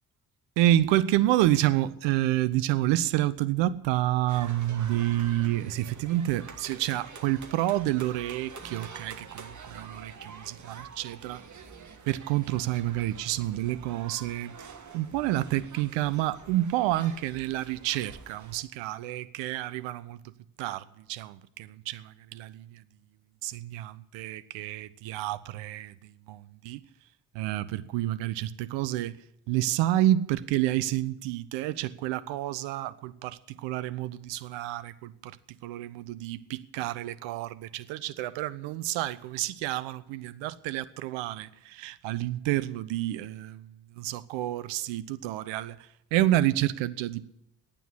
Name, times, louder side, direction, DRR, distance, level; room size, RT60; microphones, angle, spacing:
voice 1, 0.6-11.4 12.1-14.7 14.9-20.2 20.6-22.8 23.4-26.8 27.3-29.2 29.5-35.4 35.6-45.8 46.1-47.3, right 14 dB, 65° right, 0.8 m, -29 dB
sound 1, 4.3-18.6, right 5 dB, 35° right, 1.7 m, -47 dB
11.5 x 9.2 x 10.0 m
figure-of-eight pair, 40°, 48 cm